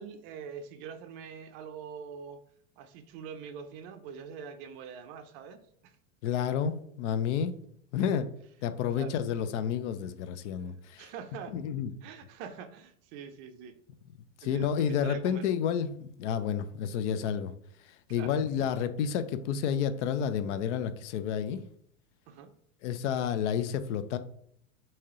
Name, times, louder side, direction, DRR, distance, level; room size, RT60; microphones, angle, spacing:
voice 1, 0.0-2.4 2.8-6.0 8.9-9.2 11.0-11.5 12.0-13.7 14.4-15.5 18.1-18.3 22.3-22.5, right 6 dB, 40° right, 8 dB, 0.4 m, -44 dB
voice 2, 6.2-7.6 7.9-8.3 8.6-11.1 11.5-11.9 14.4-17.5 17.8-21.6 22.8-24.2, left 8 dB, 60° left, 11 dB, 0.5 m, -30 dB
3.1 x 2.8 x 3.6 m, 0.66 s
hypercardioid pair, 115°, 41 cm